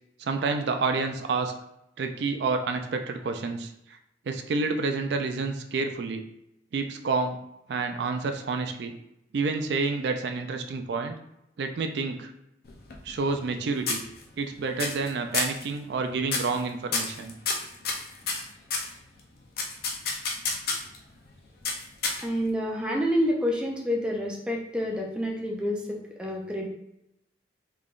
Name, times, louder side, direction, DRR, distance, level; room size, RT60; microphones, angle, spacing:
voice 1, 0.2-1.5 2.0-4.0 4.3-6.2 6.7-7.4 7.7-8.9 9.3-11.1 11.6-12.3 13.0-14.0 14.4-17.3, right 4 dB, 65° right, 6 dB, 0.4 m, -29 dB
sound 1, 12.6-13.6 13.9-14.4 14.8-15.1 15.3-15.6 16.3-16.6 16.9-18.9 19.6-21.0 21.6-22.5, left 4 dB, 55° left, 0.6 m, -30 dB
voice 2, 22.2-26.7, equal, 5° right, -1 dB, 0.5 m, -28 dB
3.6 x 3.3 x 2.4 m, 0.84 s
head